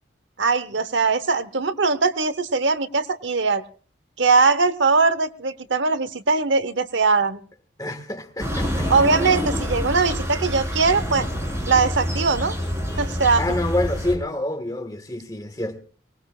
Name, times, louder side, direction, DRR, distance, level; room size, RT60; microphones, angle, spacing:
voice 1, 0.4-3.6 4.2-7.4 8.9-11.3 11.7-12.6 13.0-13.4, right 4 dB, 80° right, 1.0 m, -20 dB
voice 2, 7.8-8.9 12.9-13.0 13.4-15.8, left 1 dB, 20° left, 1.6 m, -27 dB
sound 1, 8.4-14.2, equal, 15° right, 4.1 m, -27 dB
24.0 x 19.5 x 2.4 m
head